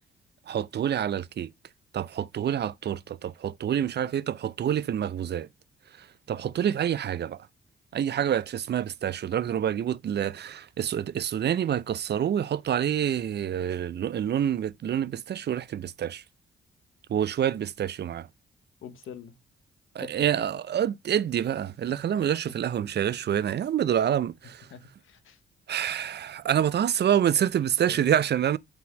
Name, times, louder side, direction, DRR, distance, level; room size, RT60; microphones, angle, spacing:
voice 1, 0.5-1.5 1.9-5.5 6.3-7.4 7.9-16.2 17.1-18.3 20.0-24.7 25.7-28.6, right 9 dB, 55° right, 0.5 m, -27 dB
voice 2, 18.8-19.3 20.0-20.2 21.9-22.0 24.7-25.4 27.8-28.2, left 7 dB, 75° left, 1.0 m, -45 dB
6.0 x 3.8 x 6.0 m
supercardioid pair, 50°, 21 cm